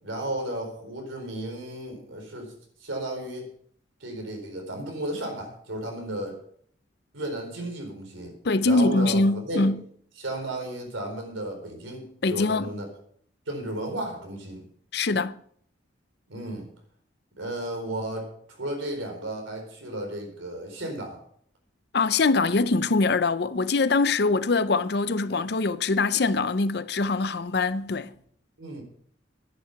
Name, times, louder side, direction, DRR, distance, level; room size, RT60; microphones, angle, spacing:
voice 1, 0.0-2.5 2.8-3.5 4.0-6.4 7.1-8.4 8.6-9.7 10.2-12.9 13.5-14.6 16.3-16.7 17.4-21.2 28.6-28.8, right 1 dB, 85° right, 4.3 m, -34 dB
voice 2, 8.4-9.8 12.2-12.7 14.9-15.4 21.9-28.1, left 3 dB, 55° left, 0.6 m, -23 dB
12.5 x 10.0 x 5.8 m
head